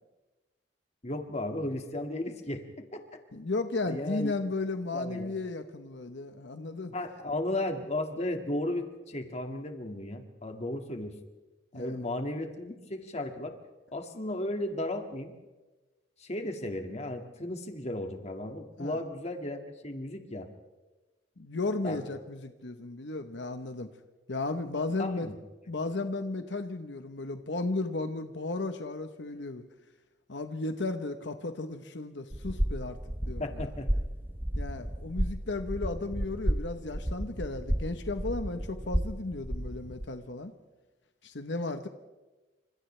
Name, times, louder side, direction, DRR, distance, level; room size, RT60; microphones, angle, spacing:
voice 1, 1.0-3.2 3.9-4.3 4.9-5.3 6.9-11.2 11.7-13.6 13.9-15.3 16.2-20.5 21.8-22.2 25.0-25.4 33.4-33.9, left 1 dB, 40° left, 5 dB, 2.1 m, -35 dB
voice 2, 3.3-6.9 11.7-11.9 18.8-19.0 21.4-23.9 24.3-25.3 25.7-29.6 30.3-33.0 33.3-33.7 34.6-40.5 41.2-41.9, left 2 dB, 85° left, 8 dB, 1.1 m, -34 dB
sound 1, 32.3-40.1, equal, 10° right, 0.8 m, -32 dB
29.0 x 26.5 x 3.4 m, 1.2 s
head